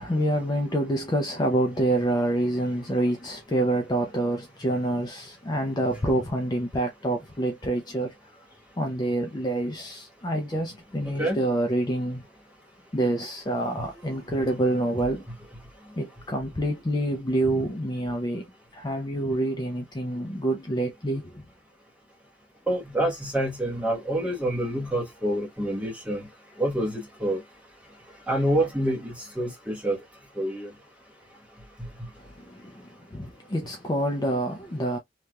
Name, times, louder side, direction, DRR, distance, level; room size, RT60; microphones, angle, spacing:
voice 1, 0.0-8.1 8.8-12.2 12.9-15.2 16.0-18.4 18.7-21.4 32.4-35.0, right 1 dB, 20° left, 0.5 m, -27 dB
voice 2, 11.0-11.4 22.7-26.2 26.6-27.4 28.3-30.0 30.4-30.7, right 1 dB, 5° right, 1.3 m, -27 dB
3.3 x 2.8 x 2.3 m
head